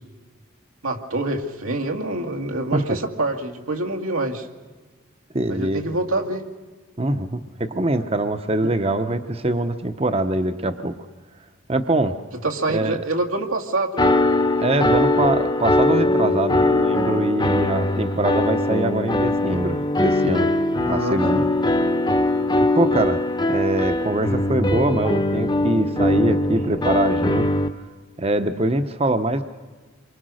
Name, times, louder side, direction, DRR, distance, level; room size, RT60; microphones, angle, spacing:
voice 1, 0.8-4.5 5.5-6.4 8.6-8.7 12.4-14.1 20.8-21.4, right 2 dB, 90° right, 2 dB, 2.4 m, -26 dB
voice 2, 5.3-5.8 7.0-10.9 11.7-12.2 12.7-13.0 14.6-20.5 20.9-21.5 22.6-23.2 23.5-27.5 28.2-29.4, right 1 dB, 30° right, 9 dB, 0.9 m, -23 dB
sound 1, 14.0-27.7, left 2 dB, 20° left, 0.9 m, -21 dB
28.0 x 24.0 x 6.4 m, 1.4 s
head